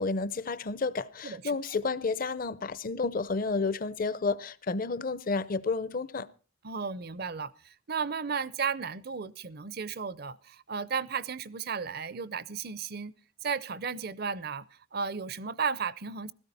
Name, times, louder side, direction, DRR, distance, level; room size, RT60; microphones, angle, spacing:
voice 1, 0.0-6.3, left 4 dB, 40° left, 0.6 m, -31 dB
voice 2, 6.6-13.1 13.4-16.3, right 5 dB, 50° right, 0.6 m, -34 dB
16.0 x 14.0 x 4.2 m
head